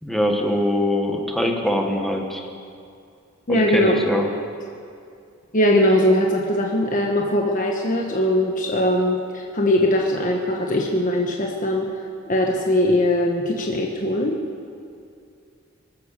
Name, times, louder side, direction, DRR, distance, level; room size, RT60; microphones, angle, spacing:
voice 1, 0.0-2.4 3.5-4.3, left 1 dB, ahead, 1 dB, 1.5 m, -23 dB
voice 2, 3.5-4.0 5.5-11.9 12.3-14.4, left 1 dB, 40° left, 0 dB, 1.2 m, -20 dB
24.0 x 8.3 x 6.7 m, 2.4 s
head